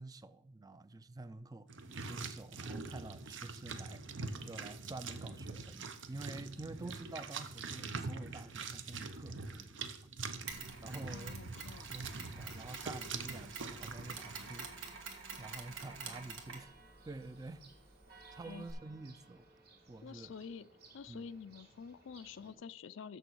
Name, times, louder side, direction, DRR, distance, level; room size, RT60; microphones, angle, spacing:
voice 1, 0.0-1.7 2.1-4.0 4.4-10.0 10.8-11.4 11.8-15.0 15.4-16.7 17.1-17.7 18.3-19.4 19.9-20.3 21.1-21.3, right 2 dB, 20° right, 0.3 m, -48 dB
sound 1, 1.7-14.7, right 4 dB, 70° right, 0.8 m, -44 dB
Mechanisms, 10.5-18.7, right 5 dB, 85° right, 1.6 m, -48 dB
voice 2, 11.1-12.0 18.4-18.7 20.0-20.7 20.9-23.2, left 6 dB, 75° left, 0.4 m, -48 dB
Church bell, 16.5-22.5, right 3 dB, 50° right, 2.5 m, -61 dB
7.0 x 6.7 x 6.2 m
head